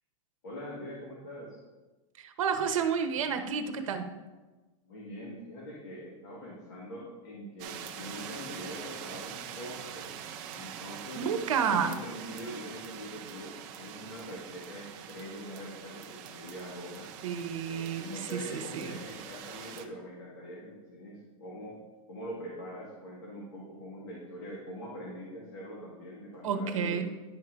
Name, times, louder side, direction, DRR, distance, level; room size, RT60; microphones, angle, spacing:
voice 1, 0.4-1.6 4.8-10.1 10.5-11.2 11.6-17.1 17.6-21.8 22.1-27.0, equal, 40° left, -5 dB, 1.7 m, -43 dB
voice 2, 2.2-4.1 11.2-11.9 17.2-19.0 26.4-27.0, right 7 dB, 70° right, 7 dB, 0.9 m, -30 dB
sound 1, 7.6-19.9, right 9 dB, 20° right, 0.4 m, -44 dB
10.5 x 3.8 x 4.6 m, 1.2 s
supercardioid pair, 175°, 17 cm